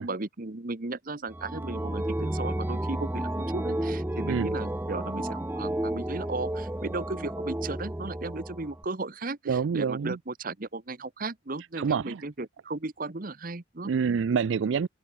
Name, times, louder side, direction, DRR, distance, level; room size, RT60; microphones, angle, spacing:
voice 1, 0.0-13.9, right 3 dB, 45° right, 1.1 m, -35 dB
sound 1, 1.3-8.8, right 1 dB, 10° right, 0.6 m, -32 dB
voice 2, 9.5-10.2 11.8-12.2 13.8-14.9, right 6 dB, 80° right, 0.4 m, -27 dB
open air
head